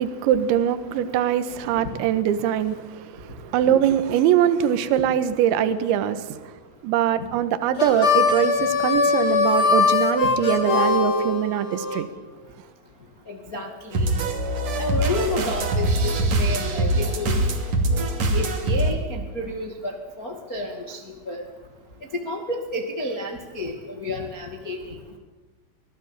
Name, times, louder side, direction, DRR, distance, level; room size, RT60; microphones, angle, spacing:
voice 1, 0.0-2.8 3.4-6.2 6.8-12.1, right 10 dB, 70° right, 3.4 m, -22 dB
Harmonica, 7.7-12.0, left 4 dB, 30° left, 3.2 m, -21 dB
voice 2, 13.3-14.1 14.8-17.4 18.3-19.9 20.2-21.0 21.3-21.4 22.2-23.7 24.0-24.9, left 2 dB, 70° left, 0.8 m, -30 dB
sound 1, 13.9-18.9, right 1 dB, 40° right, 3.2 m, -23 dB
24.5 x 18.5 x 8.9 m
omnidirectional pair, 5.9 m